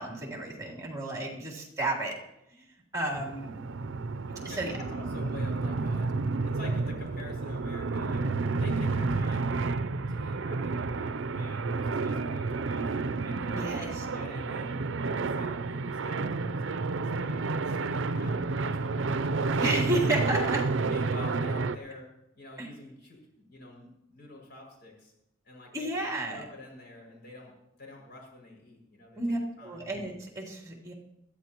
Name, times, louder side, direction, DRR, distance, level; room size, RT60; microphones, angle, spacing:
voice 1, 0.0-2.2 2.5-3.6 4.4-4.8 13.5-13.9 19.6-20.6 22.6-22.7 25.7-26.4 29.2-30.9, right 1 dB, 15° right, -2 dB, 3.3 m, -32 dB
sound 1, 3.1-21.8, right 3 dB, 75° right, 0.6 m, -30 dB
voice 2, 4.5-6.1 6.4-9.5 10.1-14.7 15.0-20.0 20.9-22.1 22.3-25.1 25.4-25.9 26.3-27.5 27.8-29.2 29.6-29.8, left 2 dB, 55° left, -1 dB, 6.2 m, -47 dB
21.5 x 14.0 x 3.0 m, 0.85 s
head